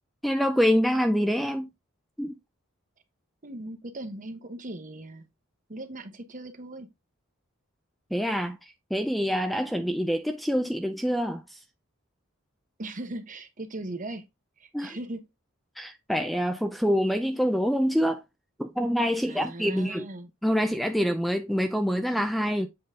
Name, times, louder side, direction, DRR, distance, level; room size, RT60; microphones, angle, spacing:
voice 1, 0.2-1.7 2.2-2.4 8.1-8.6 8.9-11.6 14.7-15.0 15.8-18.2 18.6-20.0 20.4-22.7, equal, ahead, 0.5 m, -26 dB
voice 2, 3.4-5.3 5.7-6.9 12.8-14.3 14.6-15.3 19.2-20.3, right 1 dB, 40° right, 1.1 m, -38 dB
7.8 x 3.9 x 3.7 m
head